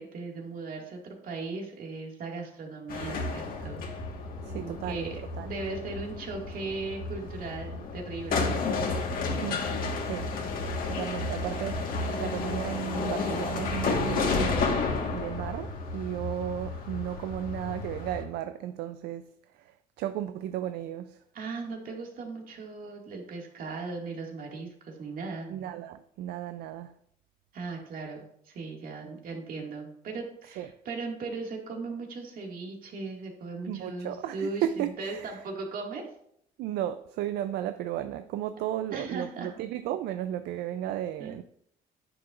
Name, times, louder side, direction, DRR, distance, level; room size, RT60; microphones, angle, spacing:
voice 1, 0.0-3.8 4.6-8.6 21.3-25.5 27.5-36.0 38.9-39.5 41.2-41.4, right 3 dB, 55° right, 2.1 m, -38 dB
sound 1, 2.9-18.2, left 4 dB, 55° left, 1.6 m, -32 dB
voice 2, 4.4-5.5 9.4-9.7 10.0-10.3 10.8-21.2 25.5-26.9 30.6-30.7 33.7-35.4 36.6-41.4, right 11 dB, 75° right, 0.4 m, -34 dB
9.6 x 7.7 x 2.5 m
cardioid pair, 110°, 17 cm